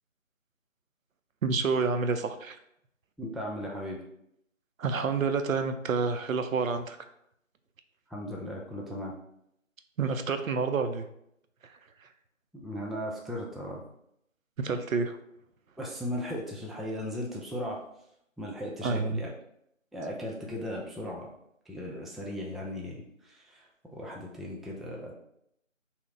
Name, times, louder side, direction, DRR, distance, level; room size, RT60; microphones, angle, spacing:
voice 1, 1.4-2.6 4.8-7.0 10.0-11.1 14.6-15.2 18.8-19.2, right 4 dB, 85° right, 8 dB, 0.5 m, -28 dB
voice 2, 3.2-4.0 8.1-9.1 12.5-13.8 15.8-17.8 18.4-19.3 19.9-21.3 21.7-23.7 23.9-25.1, equal, ahead, -2 dB, 0.3 m, -37 dB
2.8 x 2.1 x 3.7 m, 0.75 s
figure-of-eight pair, 175°, 39 cm